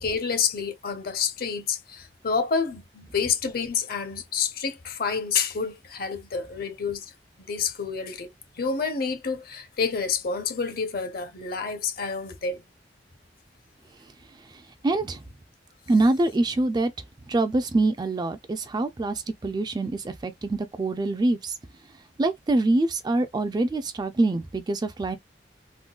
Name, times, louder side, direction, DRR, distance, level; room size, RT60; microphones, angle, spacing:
voice 1, 0.0-7.1 7.4-8.3 8.6-12.6, left 5 dB, 55° left, 0.8 m, -28 dB
voice 2, 14.8-15.2 15.9-16.9 17.3-21.5 22.2-25.2, right 2 dB, 25° right, 0.3 m, -25 dB
3.6 x 2.2 x 2.3 m
head